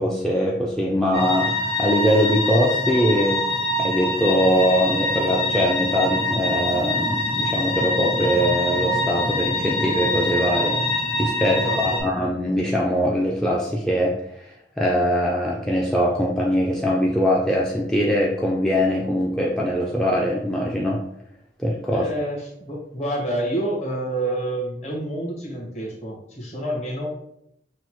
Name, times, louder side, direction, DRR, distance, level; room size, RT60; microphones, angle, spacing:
voice 1, 0.0-1.5 1.8-3.4 3.8-10.8 11.2-21.0 21.6-22.1, equal, 5° left, -4 dB, 0.3 m, -22 dB
sound 1, 1.1-12.0, left 2 dB, 55° left, 1.5 m, -24 dB
voice 2, 11.5-12.1 21.9-27.1, right 1 dB, 40° left, -3 dB, 1.2 m, -28 dB
6.0 x 2.1 x 3.0 m, 0.77 s
head